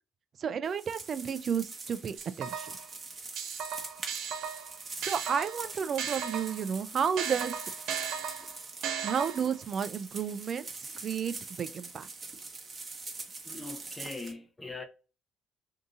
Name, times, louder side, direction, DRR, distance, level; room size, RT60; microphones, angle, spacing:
voice 1, 0.4-2.8 5.0-7.5 9.0-10.7 11.0-12.1, right 7 dB, 45° right, 0.3 m, -32 dB
sound 1, 0.6-14.3, right 3 dB, 30° right, 0.9 m, -44 dB
sound 2, 2.2-2.9 3.4-6.7 7.2-9.6, right 7 dB, 75° right, 0.7 m, -36 dB
voice 2, 13.4-14.8, left 3 dB, 20° left, 0.7 m, -41 dB
2.7 x 2.6 x 3.6 m
cardioid pair, 110°, 0 cm